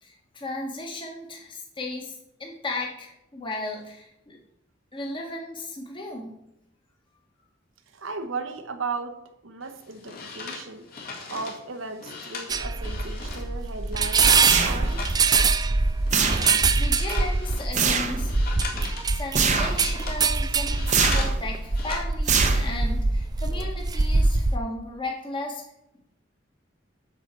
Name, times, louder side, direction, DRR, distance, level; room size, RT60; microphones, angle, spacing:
voice 1, 0.0-2.1 2.4-4.4 4.9-6.3 16.8-18.5 19.0-20.8 21.1-25.6, left 2 dB, 25° left, 0 dB, 1.5 m, -35 dB
voice 2, 7.9-10.9 11.3-15.1, right 4 dB, 85° right, 7 dB, 1.1 m, -36 dB
sound 1, 9.6-13.5 13.7-15.6 16.0-16.7 16.9-21.4 21.6-22.0, left 4 dB, 50° left, 2.0 m, -37 dB
sound 2, 12.5-24.6, right 4 dB, 20° right, 0.4 m, -24 dB
sound 3, 14.4-15.1 16.1-16.8 17.7-18.2 19.4-19.9 20.9-21.4 22.3-22.9, right 6 dB, 40° right, 0.8 m, -24 dB
8.1 x 4.7 x 7.3 m, 0.82 s
head